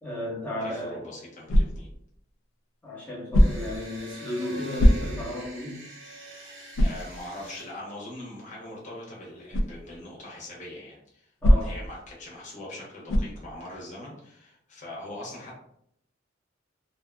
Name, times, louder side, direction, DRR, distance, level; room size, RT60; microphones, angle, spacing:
voice 1, 0.0-1.1 2.8-5.8 11.4-11.8, left 1 dB, 10° left, -7 dB, 0.9 m, -34 dB
voice 2, 0.6-1.9 6.3-6.5 6.8-15.6, left 1 dB, 40° left, -4 dB, 0.8 m, -42 dB
sound 1, 1.5-2.0 3.3-3.8 4.8-5.4 5.9-6.0 6.7-7.1 9.5-9.8 11.4-11.9 13.1-13.4, equal, 75° left, 0.3 m, -21 dB
sound 2, 3.4-7.7, right 1 dB, 65° right, 0.7 m, -44 dB
2.4 x 2.4 x 2.2 m, 0.73 s
head